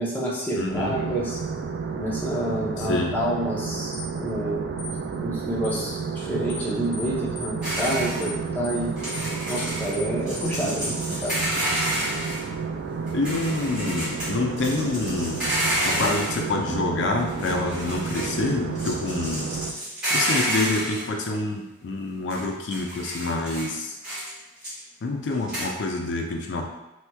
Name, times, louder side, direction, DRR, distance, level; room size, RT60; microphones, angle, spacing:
voice 1, 0.0-1.4 1.9-4.6 5.2-8.9 9.5-11.3, right 1 dB, 10° left, -7 dB, 0.6 m, -28 dB
voice 2, 0.5-1.0 2.8-3.1 13.1-15.4 15.8-19.5 20.1-24.0 25.0-26.7, left 3 dB, 90° left, 2 dB, 0.4 m, -27 dB
sound 1, 0.7-19.7, right 5 dB, 75° right, 0.3 m, -31 dB
sound 2, 3.9-4.1 4.8-5.0 5.6-5.8 6.5-6.7 6.9-7.1 7.4-7.5 7.8-8.0 8.2-8.4 8.6-8.8 9.1-9.2 9.5-9.7 9.9-10.1 10.4-10.5 10.8-11.0 11.2-11.4, equal, 70° left, 1.1 m, -38 dB
sound 3, 7.6-8.2 9.0-9.9 10.3-12.4 13.1-14.3 14.6-16.4 17.2-18.5 18.7-21.1 22.3-22.4 22.7-23.7 24.0-24.3 24.6-24.8 25.5-25.6, right 1 dB, 5° right, 1.4 m, -29 dB
3.3 x 2.9 x 2.2 m, 0.98 s
head